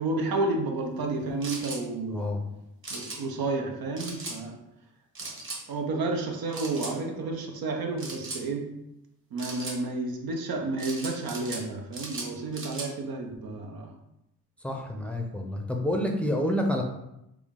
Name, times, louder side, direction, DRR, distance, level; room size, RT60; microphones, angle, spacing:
voice 1, 0.0-2.4 2.9-4.6 5.7-8.8 9.3-13.9, right 3 dB, 70° right, 2 dB, 0.8 m, -31 dB
sound 1, 1.4-1.8 2.8-3.2 4.0-4.4 5.2-5.6 6.5-6.9 8.0-8.4 9.4-9.8 10.8-11.6 11.9-12.9, right 2 dB, 35° right, 1.2 m, -37 dB
voice 2, 14.6-16.8, left 1 dB, 5° left, 2 dB, 0.6 m, -28 dB
3.6 x 2.3 x 3.6 m, 0.84 s
supercardioid pair, 60°, 37 cm